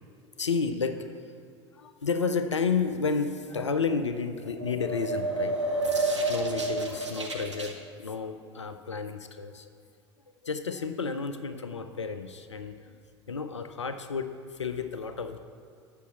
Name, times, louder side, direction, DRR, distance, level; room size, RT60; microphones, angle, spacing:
voice 1, 0.4-1.3 1.7-5.6 6.3-9.7 10.4-12.9 13.3-15.4, left 5 dB, 85° left, 9 dB, 0.5 m, -31 dB
sound 1, 4.4-7.7, right 2 dB, 90° right, 0.9 m, -29 dB
8.3 x 6.5 x 7.4 m, 2.3 s
figure-of-eight pair, 75°, 15 cm